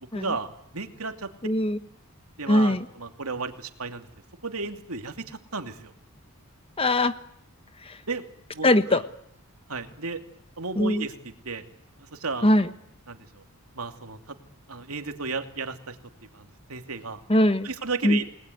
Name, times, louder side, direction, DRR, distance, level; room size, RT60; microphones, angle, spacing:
voice 1, 0.1-0.5 0.7-1.3 2.4-4.1 4.4-5.9 8.1-8.2 8.5-9.0 9.7-10.2 10.6-11.6 12.0-12.5 13.1-13.4 13.7-14.4 14.7-16.0 16.3-17.2 17.6-18.3, right 4 dB, 80° right, 7 dB, 2.7 m, -33 dB
voice 2, 1.4-1.8 2.5-2.8 6.8-7.1 7.8-8.0 8.6-9.0 10.8-11.1 12.4-12.7 17.3-17.7 18.0-18.2, left 1 dB, 25° left, 12 dB, 1.1 m, -21 dB
29.0 x 20.0 x 9.5 m, 0.77 s
head